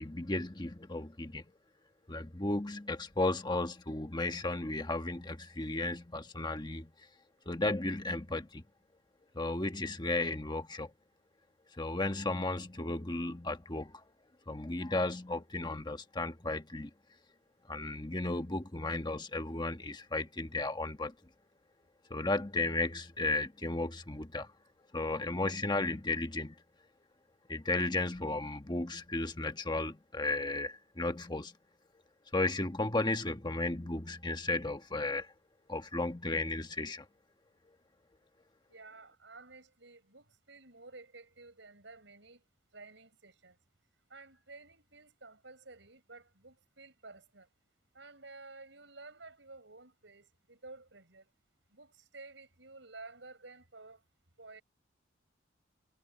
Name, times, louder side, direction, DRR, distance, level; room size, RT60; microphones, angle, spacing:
voice 1, 0.0-1.4 2.1-6.9 7.4-8.6 9.3-10.9 11.8-14.0 14.5-16.9 17.7-21.1 22.1-24.5 24.9-26.6 27.5-31.5 32.3-35.3 35.7-37.0, left 2 dB, 25° left, 1.3 m, -34 dB
voice 2, 38.7-42.4 42.7-43.6 44.1-47.5 47.9-51.3 51.7-54.0 54.4-54.6, right 3 dB, 70° right, 6.7 m, -53 dB
head